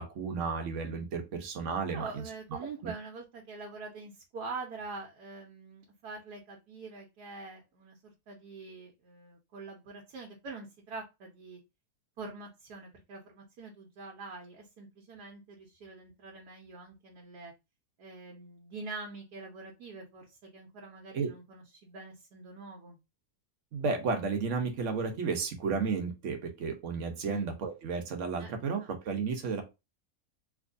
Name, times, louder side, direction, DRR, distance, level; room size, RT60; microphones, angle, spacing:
voice 1, 0.0-2.2 21.1-21.3 23.7-29.6, right 5 dB, 60° right, 4 dB, 1.0 m, -33 dB
voice 2, 1.9-11.6 12.2-17.5 18.0-23.0 27.2-27.5 28.4-28.5 28.8-28.9, right 3 dB, 85° right, 0 dB, 1.3 m, -45 dB
3.5 x 3.0 x 2.5 m, 0.25 s
omnidirectional pair, 1.6 m